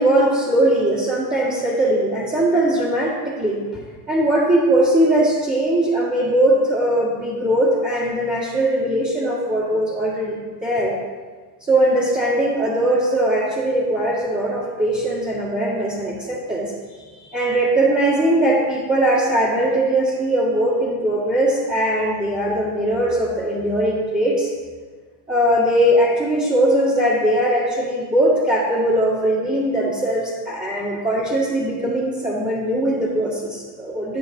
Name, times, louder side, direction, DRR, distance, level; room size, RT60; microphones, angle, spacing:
voice 1, 0.0-3.8 4.1-11.0 11.7-24.5 25.3-34.2, right 1 dB, 20° right, -9 dB, 1.8 m, -20 dB
12.0 x 6.5 x 2.7 m, 1.5 s
cardioid pair, 110°, 45 cm